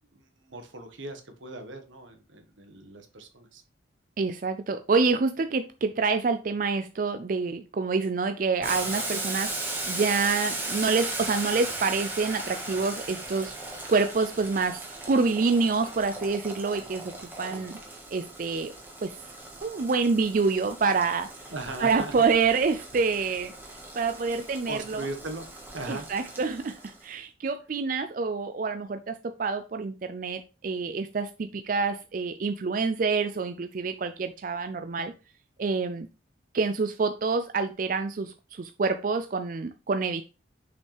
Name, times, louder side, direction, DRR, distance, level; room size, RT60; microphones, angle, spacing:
voice 1, 0.1-3.6 17.5-17.6 21.5-22.1 23.2-23.3 24.6-25.5 25.7-26.1, right 2 dB, 75° right, 1.5 m, -39 dB
voice 2, 4.2-17.8 18.1-18.7 19.0-19.1 19.6-21.3 21.8-23.5 24.0-25.1 25.9-35.1 35.6-36.1 36.5-40.2, right 4 dB, 45° right, 0.4 m, -27 dB
Boiling, 8.6-27.0, right 2 dB, 10° right, 1.5 m, -37 dB
6.6 x 5.3 x 3.4 m
head